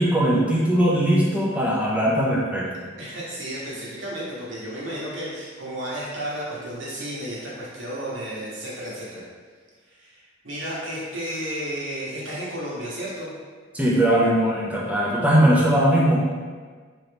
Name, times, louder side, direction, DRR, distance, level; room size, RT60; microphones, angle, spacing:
voice 1, 0.0-2.9 13.7-16.2, right 1 dB, 5° right, -6 dB, 0.5 m, -20 dB
voice 2, 3.0-9.2 9.9-13.3, right 1 dB, 70° right, -7 dB, 1.0 m, -33 dB
2.9 x 2.6 x 3.3 m, 1.5 s
head